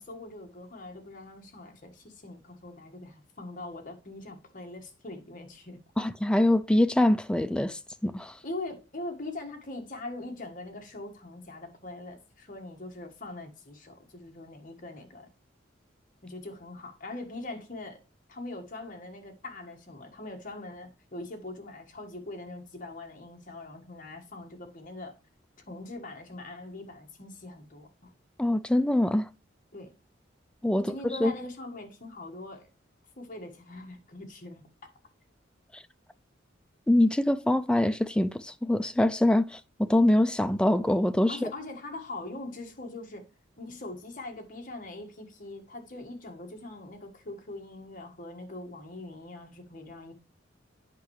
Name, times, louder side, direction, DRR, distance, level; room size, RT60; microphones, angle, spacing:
voice 1, 0.0-5.8 8.4-15.3 16.2-18.0 18.3-25.2 25.7-28.1 29.7-29.9 30.7-32.7 33.2-34.6 41.3-43.2 43.6-50.1, left 2 dB, 45° left, 1.5 m, -42 dB
voice 2, 6.0-8.4 28.4-29.3 30.6-31.3 35.7-35.8 36.9-41.5, left 1 dB, 5° left, 0.3 m, -24 dB
8.3 x 5.4 x 3.1 m
head